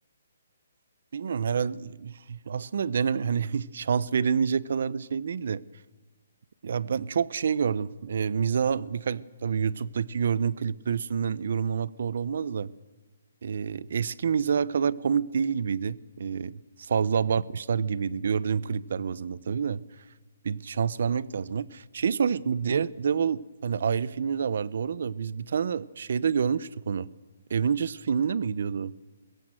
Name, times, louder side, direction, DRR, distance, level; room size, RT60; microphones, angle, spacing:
voice 1, 1.1-5.6 6.6-12.7 13.4-19.8 20.4-27.1 27.5-28.9, right 6 dB, 55° right, 20 dB, 0.6 m, -28 dB
22.0 x 15.5 x 7.6 m, 1.3 s
hypercardioid pair, 170°, 0 cm